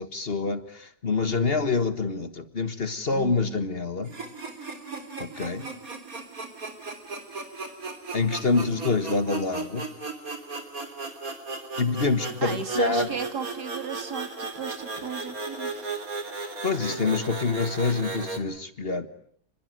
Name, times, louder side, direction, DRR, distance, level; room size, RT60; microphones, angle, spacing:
voice 1, 0.0-4.1 5.2-5.6 8.1-9.9 11.8-13.1 16.6-19.1, left 4 dB, 40° left, 12 dB, 1.6 m, -26 dB
voice 2, 3.1-3.6 12.4-16.1, right 5 dB, 80° right, 8 dB, 3.1 m, -35 dB
sound 1, 4.0-18.4, right 3 dB, 60° right, 3.8 m, -36 dB
30.0 x 21.5 x 9.2 m, 0.63 s
omnidirectional pair, 1.7 m